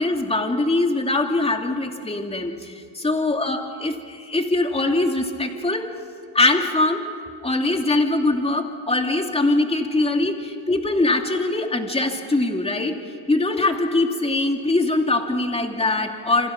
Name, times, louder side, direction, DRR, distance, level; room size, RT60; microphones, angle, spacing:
voice 1, 0.0-5.9 6.3-7.0 7.4-16.5, left 2 dB, 15° left, 3 dB, 2.7 m, -22 dB
29.0 x 26.0 x 6.0 m, 2.2 s
cardioid pair, 105°, 47 cm